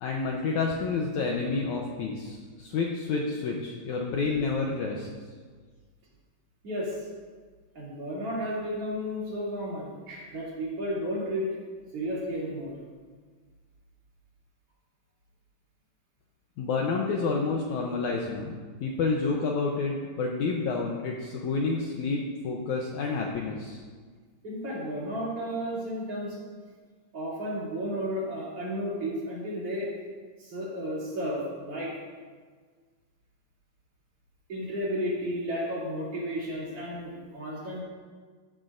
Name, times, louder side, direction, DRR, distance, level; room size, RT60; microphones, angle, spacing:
voice 1, 0.0-5.1 16.6-23.8, left 4 dB, 90° left, 0 dB, 1.7 m, -29 dB
voice 2, 6.6-7.0 7.8-11.5 11.9-12.7 24.4-26.4 27.1-29.9 30.4-31.9 34.5-37.8, equal, 40° right, -7 dB, 3.4 m, -33 dB
14.0 x 12.0 x 2.6 m, 1.5 s
omnidirectional pair, 4.5 m